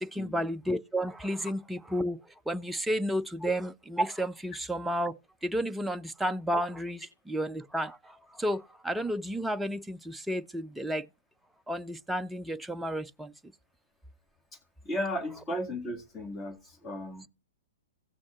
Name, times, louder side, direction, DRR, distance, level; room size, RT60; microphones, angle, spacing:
voice 1, 0.0-2.2 2.5-11.1 11.7-13.3, equal, 5° right, 0.5 m, -32 dB
voice 2, 14.8-17.3, left 1 dB, 20° left, 1.9 m, -35 dB
17.0 x 6.1 x 2.4 m
hypercardioid pair, 115°, 0 cm